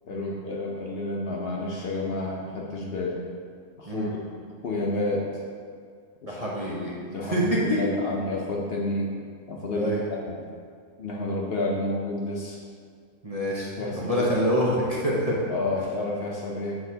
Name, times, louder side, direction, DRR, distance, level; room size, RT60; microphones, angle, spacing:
voice 1, 0.1-3.2 3.8-4.1 4.6-5.3 6.2-6.4 6.8-9.1 9.5-10.0 10.3-10.4 11.0-12.6 13.8-14.3 15.5-16.8, left 2 dB, 55° left, -2 dB, 0.7 m, -30 dB
voice 2, 6.3-7.8 9.8-10.0 13.2-15.4, equal, 35° right, -6 dB, 0.8 m, -26 dB
7.9 x 4.8 x 2.8 m, 2.1 s
omnidirectional pair, 1.4 m